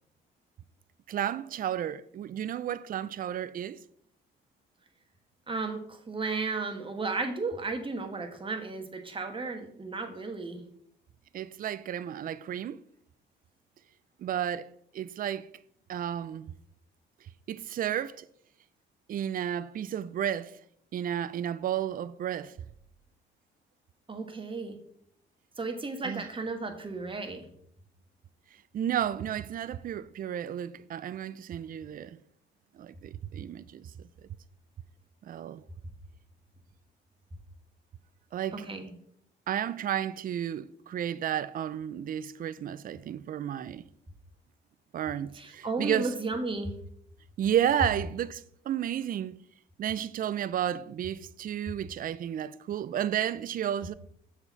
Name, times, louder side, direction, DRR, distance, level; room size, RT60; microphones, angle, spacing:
voice 1, 1.1-3.8 11.3-12.8 14.2-15.5 15.9-16.5 17.5-18.3 19.1-20.5 20.9-22.6 26.0-26.3 28.7-32.2 32.7-33.9 35.2-35.6 38.3-38.7 39.5-43.8 44.9-46.1 47.4-49.4 49.8-53.9, right 10 dB, 45° right, 0.4 m, -32 dB
voice 2, 5.5-10.6 24.1-24.8 25.6-27.5 38.5-38.9 45.4-46.7, right 3 dB, 25° right, 1.3 m, -34 dB
6.9 x 4.2 x 5.8 m
cardioid pair, 90°, 20 cm